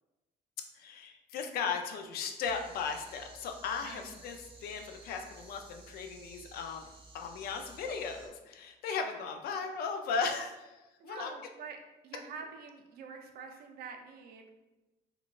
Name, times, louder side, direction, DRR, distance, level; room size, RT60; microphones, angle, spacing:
voice 1, 0.7-6.8 7.1-11.3, left 5 dB, 65° left, 4 dB, 0.4 m, -37 dB
sound 1, 2.4-8.3, right 2 dB, 30° right, 0.7 m, -54 dB
voice 2, 3.7-4.2 11.0-11.8 12.0-14.5, right 5 dB, 65° right, 3 dB, 0.5 m, -46 dB
3.7 x 2.3 x 2.3 m, 1.1 s
cardioid pair, 110°, 17 cm